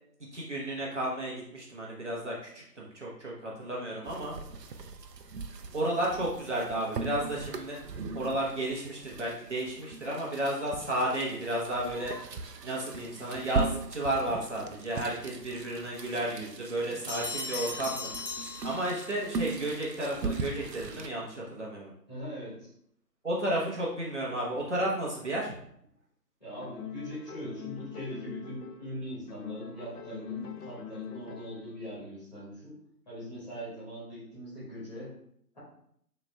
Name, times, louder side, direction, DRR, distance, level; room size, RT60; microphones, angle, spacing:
voice 1, 0.3-4.3 5.7-7.8 8.1-12.1 12.6-21.9 23.2-25.5, right 1 dB, 45° right, -5 dB, 1.1 m, -32 dB
sound 1, 4.1-21.1, right 4 dB, 80° right, 0.7 m, -39 dB
Bell, 17.1-19.3, left 3 dB, 45° left, 1.0 m, -38 dB
voice 2, 22.1-22.7 26.4-32.8 33.1-35.1, equal, 25° left, -9 dB, 1.8 m, -41 dB
sound 2, 26.6-29.0 29.3-31.7, left 8 dB, 65° left, 0.8 m, -43 dB
6.9 x 3.3 x 2.3 m, 0.70 s
figure-of-eight pair, 175°, 49 cm